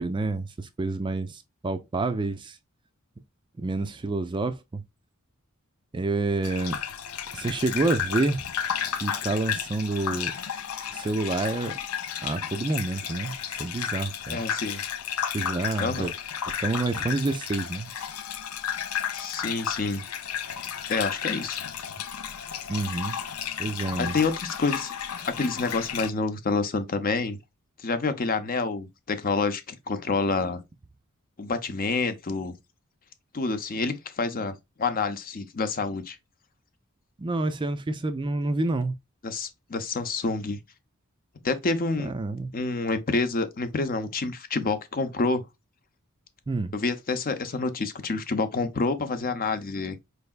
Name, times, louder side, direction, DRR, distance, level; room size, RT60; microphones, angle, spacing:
voice 1, 0.0-2.6 3.6-4.8 5.9-6.8 7.3-8.4 9.0-10.3 10.9-11.7 12.2-14.4 15.3-16.1 16.6-17.9 22.7-23.2 23.6-24.2 37.2-38.9 42.0-42.5 46.5-46.7, right 2 dB, 20° right, 0.4 m, -28 dB
Gurgling / Bathtub (filling or washing), 6.4-26.1, left 8 dB, 85° left, 0.6 m, -33 dB
voice 2, 14.3-14.8 15.8-16.1 19.1-20.0 20.9-21.6 24.0-24.9 25.2-27.4 27.8-30.6 31.4-32.5 33.3-36.2 39.2-40.6 41.4-42.1 42.5-45.4 46.7-50.0, left 3 dB, 40° left, 0.7 m, -28 dB
4.6 x 3.3 x 2.4 m
head